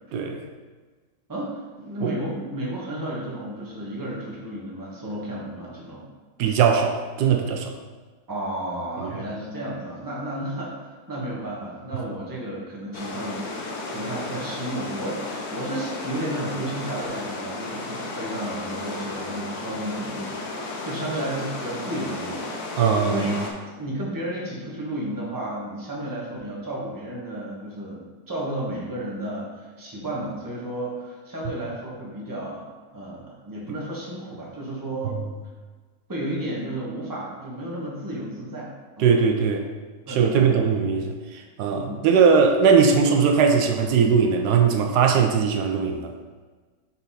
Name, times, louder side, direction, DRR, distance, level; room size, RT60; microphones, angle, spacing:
voice 1, 0.1-0.5 2.0-2.1 6.4-7.7 9.0-9.1 22.8-23.4 39.0-39.7 40.1-46.1, right 6 dB, 80° right, 4 dB, 1.1 m, -20 dB
voice 2, 1.3-6.0 8.3-22.5 22.7-23.4 23.8-32.7 32.9-35.2 36.1-38.7 39.0-39.1 40.1-40.6 41.7-42.0, right 1 dB, 15° right, -4 dB, 1.0 m, -32 dB
sound 1, 12.9-23.5, left 2 dB, 70° left, 1.3 m, -34 dB
5.6 x 4.0 x 4.1 m, 1.4 s
omnidirectional pair, 1.7 m